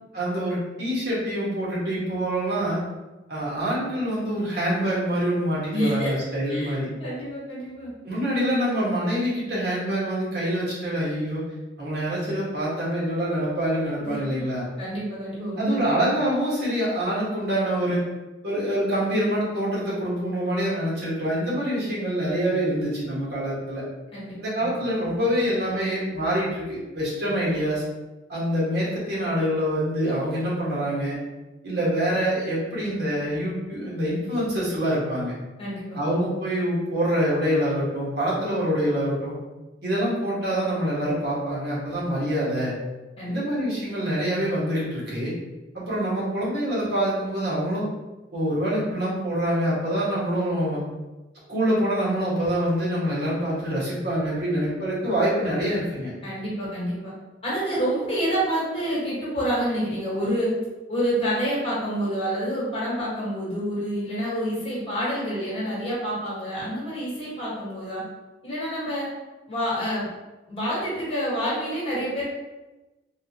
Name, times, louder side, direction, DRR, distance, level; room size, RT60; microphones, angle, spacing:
voice 1, 0.1-2.8 3.3-6.9 8.0-11.5 11.8-14.7 15.6-18.0 18.4-23.8 24.4-27.8 28.3-31.2 31.6-35.3 35.9-39.3 39.8-42.7 43.2-45.3 45.7-47.8 48.3-50.8 51.5-56.1, equal, 65° right, -7 dB, 1.4 m, -25 dB
voice 2, 5.7-6.1 6.5-6.7 7.0-7.9 14.0-14.4 14.8-16.0 24.1-24.7 35.6-36.0 43.2-43.4 56.2-57.1 57.4-60.5 60.9-68.0 68.4-69.1 69.5-70.1 70.5-72.2, equal, 35° left, -7 dB, 1.3 m, -28 dB
3.5 x 2.4 x 2.9 m, 1.1 s
head